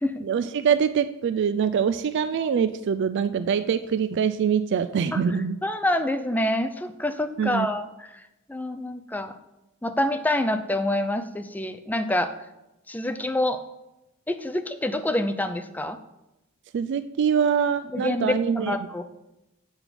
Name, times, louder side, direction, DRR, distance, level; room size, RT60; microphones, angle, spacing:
voice 1, 0.2-5.6 7.4-7.7 16.7-18.8, right 7 dB, 55° right, 12 dB, 0.3 m, -24 dB
voice 2, 5.6-8.2 8.5-9.3 9.8-12.3 12.9-13.6 14.3-16.0 17.9-19.0, left 1 dB, 10° left, 8 dB, 0.5 m, -27 dB
7.9 x 5.3 x 5.9 m, 0.94 s
head